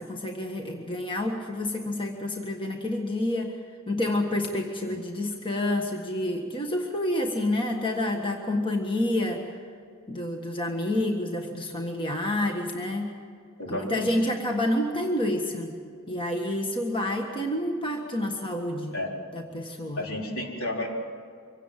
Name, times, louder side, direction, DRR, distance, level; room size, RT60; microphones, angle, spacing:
voice 1, 0.0-3.6 3.9-9.5 10.1-13.1 13.7-15.7 16.1-19.0 19.3-20.0, left 1 dB, 25° left, 2 dB, 1.6 m, -28 dB
voice 2, 13.6-14.1 18.9-19.1 20.0-20.9, left 1 dB, 65° left, -1 dB, 4.3 m, -32 dB
24.5 x 17.5 x 7.5 m, 2.3 s
head